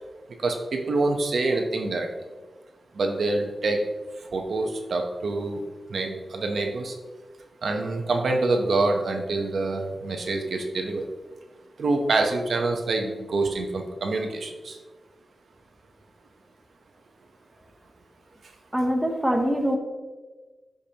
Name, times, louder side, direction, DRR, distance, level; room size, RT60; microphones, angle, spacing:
voice 1, 0.4-2.1 3.0-3.8 4.3-5.6 5.9-6.9 7.6-11.0 11.8-14.8, right 3 dB, 65° right, 3 dB, 1.0 m, -26 dB
voice 2, 18.7-19.8, equal, 5° right, 2 dB, 0.9 m, -23 dB
13.5 x 5.2 x 2.9 m, 1.3 s
wide cardioid pair, 155°, 0 cm